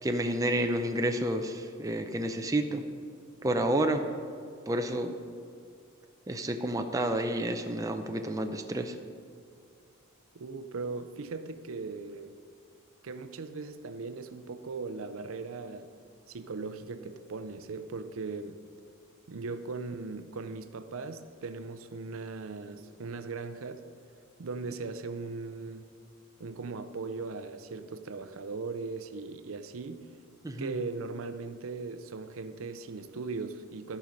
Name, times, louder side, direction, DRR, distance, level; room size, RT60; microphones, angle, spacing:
voice 1, 0.0-2.8 3.4-4.1 4.7-5.2 6.3-8.9 30.4-30.7, right 1 dB, 15° right, 0.5 m, -30 dB
voice 2, 10.3-12.3 13.0-15.9 16.3-18.6 19.3-23.9 24.4-25.9 26.4-30.1 30.6-34.0, right 4 dB, 70° right, 0.5 m, -38 dB
14.5 x 5.5 x 5.2 m
head